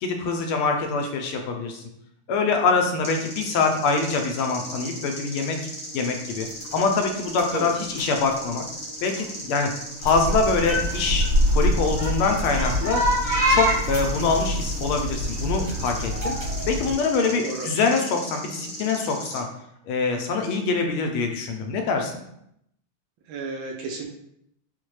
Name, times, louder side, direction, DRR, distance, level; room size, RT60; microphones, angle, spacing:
voice 1, 0.0-1.8 2.3-5.6 5.9-8.6 9.0-9.7 10.0-13.1 13.5-16.3 16.7-19.5 19.9-22.2, left 4 dB, 80° left, 4 dB, 1.4 m, -24 dB
sound 1, 3.0-19.4, equal, 45° left, 0.8 m, -37 dB
sound 2, 6.2-16.6, left 3 dB, 25° right, 0.7 m, -42 dB
sound 3, 10.0-16.9, equal, 50° right, 1.5 m, -24 dB
voice 2, 17.4-17.7 23.3-24.1, right 3 dB, 75° right, 2 dB, 1.3 m, -32 dB
4.2 x 2.2 x 3.1 m, 0.76 s
omnidirectional pair, 2.4 m